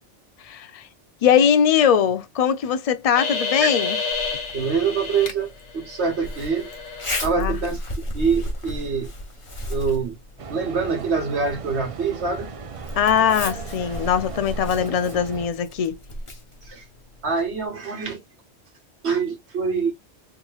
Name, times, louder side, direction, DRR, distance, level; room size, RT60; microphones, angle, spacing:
voice 1, 0.4-0.8 1.2-4.0 7.4-7.6 13.0-16.0, left 8 dB, 55° left, 0.4 m, -21 dB
sound 1, 3.2-5.3 5.7-7.2 7.6-7.7, left 4 dB, 80° left, 1.3 m, -29 dB
Zipper (clothing), 4.1-17.7, left 1 dB, 30° left, 1.0 m, -35 dB
voice 2, 4.5-6.7 7.2-7.8 8.1-9.1 9.7-10.2 10.5-12.5 16.7-16.8 17.2-18.2 19.0-19.9, right 5 dB, 70° right, 1.7 m, -25 dB
sound 2, 10.4-15.5, right 5 dB, 45° right, 0.5 m, -37 dB
3.6 x 3.0 x 2.2 m
omnidirectional pair, 1.2 m